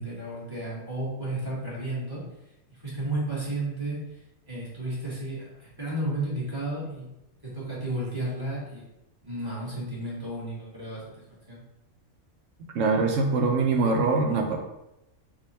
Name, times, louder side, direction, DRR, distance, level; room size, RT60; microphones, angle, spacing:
voice 1, 0.0-2.2 2.8-4.0 4.4-7.1 7.4-8.8 9.2-11.0 11.5-11.6, right 1 dB, 15° right, -8 dB, 1.4 m, -32 dB
voice 2, 12.7-14.6, right 3 dB, 70° right, 3 dB, 0.9 m, -23 dB
3.6 x 2.4 x 4.0 m, 0.89 s
omnidirectional pair, 1.5 m